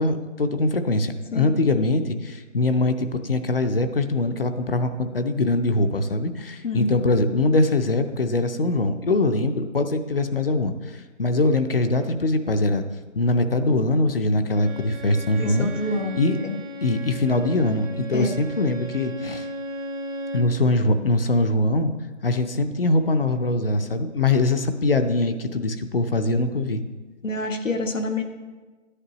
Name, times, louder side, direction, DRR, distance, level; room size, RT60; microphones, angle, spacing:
voice 1, 0.0-10.7 11.2-12.8 13.1-15.7 16.1-16.4 16.8-19.5 20.3-21.9 22.2-26.8, left 2 dB, 50° left, 9 dB, 0.6 m, -22 dB
Bowed string instrument, 14.5-20.6, right 1 dB, 85° right, 1.3 m, -36 dB
voice 2, 15.4-16.6 18.1-18.4 27.2-28.2, left 1 dB, 80° left, 5 dB, 1.3 m, -27 dB
10.5 x 9.8 x 3.0 m, 1.3 s
figure-of-eight pair, 170°, 38 cm